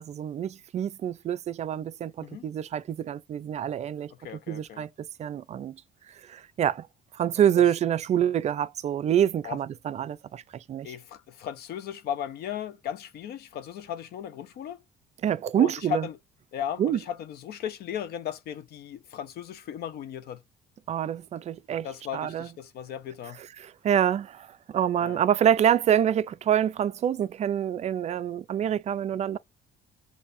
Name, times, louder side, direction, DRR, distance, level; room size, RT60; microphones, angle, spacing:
voice 1, 0.0-4.1 4.5-5.8 6.3-6.9 7.1-10.9 15.2-16.1 16.8-17.0 20.9-21.9 22.1-22.5 23.6-29.4, right 10 dB, 40° right, 0.4 m, -26 dB
voice 2, 4.2-4.9 9.4-9.6 10.8-14.8 15.6-16.2 16.5-20.4 21.8-23.4 25.0-25.2, left 9 dB, 70° left, 0.8 m, -36 dB
6.9 x 2.7 x 2.6 m
cardioid pair, 110°, 17 cm